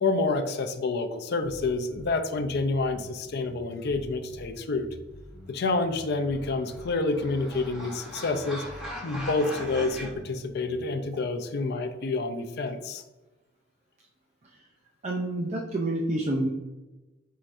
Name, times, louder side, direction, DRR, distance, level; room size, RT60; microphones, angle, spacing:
voice 1, 0.0-4.9 5.5-8.6 9.0-13.0, left 3 dB, 55° left, 6 dB, 0.4 m, -28 dB
sound 1, 1.4-11.0, left 1 dB, 15° left, 1.0 m, -47 dB
sound 2, 6.3-10.1, equal, 5° right, 1.3 m, -40 dB
voice 2, 15.0-16.5, right 1 dB, 35° right, -1 dB, 0.4 m, -28 dB
4.7 x 4.3 x 2.5 m, 1.1 s
head